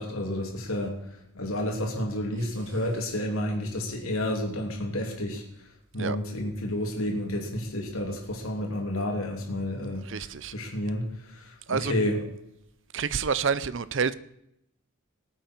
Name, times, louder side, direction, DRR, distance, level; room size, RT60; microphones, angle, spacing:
voice 1, 0.0-5.4 5.9-10.3 10.5-12.2, left 1 dB, 80° left, 2.9 m, -30 dB
voice 2, 10.0-10.5 11.7-11.9 12.9-14.1, right 6 dB, 60° right, 0.6 m, -28 dB
18.5 x 9.0 x 4.5 m
head